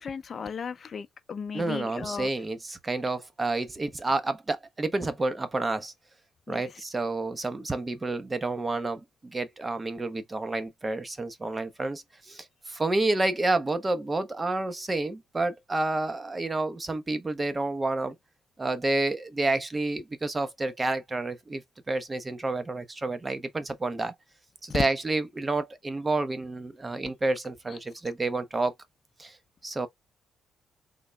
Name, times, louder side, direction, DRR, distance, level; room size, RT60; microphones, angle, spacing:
voice 1, 0.0-2.3 6.5-6.6 24.7-24.9, left 6 dB, 45° left, 0.5 m, -34 dB
voice 2, 1.5-5.9 6.5-18.1 18.6-24.1 24.6-28.7 29.2-29.4 29.6-29.9, right 2 dB, 25° right, 0.8 m, -29 dB
3.7 x 2.2 x 3.3 m
cardioid pair, 90°, 0 cm